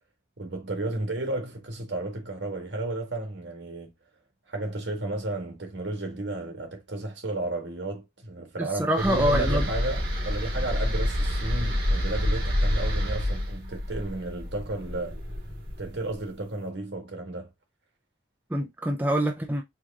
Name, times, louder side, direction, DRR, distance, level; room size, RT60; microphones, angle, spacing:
voice 1, 0.4-3.9 4.5-15.2 15.8-17.5, right 2 dB, 75° right, 1.6 m, -33 dB
voice 2, 8.6-9.7 18.5-19.6, right 1 dB, 10° right, 0.4 m, -25 dB
sound 1, 8.9-16.1, left 1 dB, 50° right, 2.6 m, -28 dB
4.6 x 2.5 x 3.5 m
head